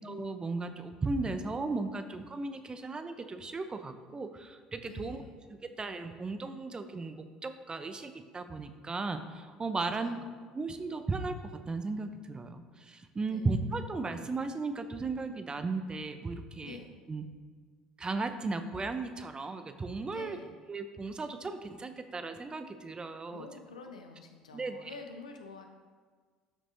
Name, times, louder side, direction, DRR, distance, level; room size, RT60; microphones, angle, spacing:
voice 1, 0.0-5.2 5.6-10.2 10.5-11.4 11.6-16.8 17.1-17.2 18.0-20.4 20.7-23.5 24.5-24.9, right 3 dB, 25° right, 9 dB, 0.7 m, -36 dB
voice 2, 4.8-5.4 9.7-10.6 13.3-13.5 16.6-16.9 20.1-20.5 23.3-25.6, left 4 dB, 80° left, 4 dB, 0.7 m, -48 dB
12.0 x 6.1 x 2.7 m, 1.5 s
figure-of-eight pair, 60°, 4 cm